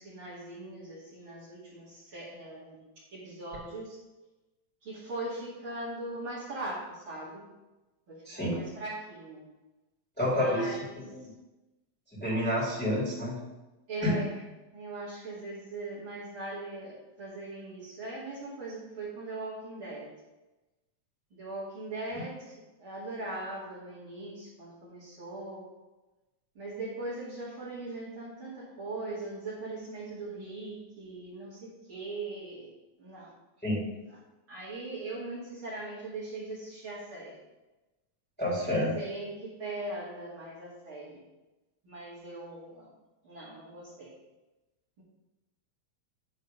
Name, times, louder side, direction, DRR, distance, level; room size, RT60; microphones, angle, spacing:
voice 1, 0.0-2.8 3.1-4.0 4.8-7.5 8.1-9.4 10.3-11.0 13.9-14.3 14.7-20.1 21.3-22.5 22.8-25.7 26.5-32.7 33.0-33.3 34.1-34.2 34.5-37.4 38.5-41.2 41.8-42.9 43.2-44.1, right 2 dB, 45° right, -9 dB, 2.9 m, -40 dB
voice 2, 8.2-8.6 10.2-10.7 11.1-11.3 12.2-13.4 14.0-14.1 33.6-33.8 38.4-38.9, left 1 dB, 5° left, -7 dB, 2.8 m, -28 dB
10.0 x 4.1 x 5.5 m, 1.1 s
omnidirectional pair, 3.4 m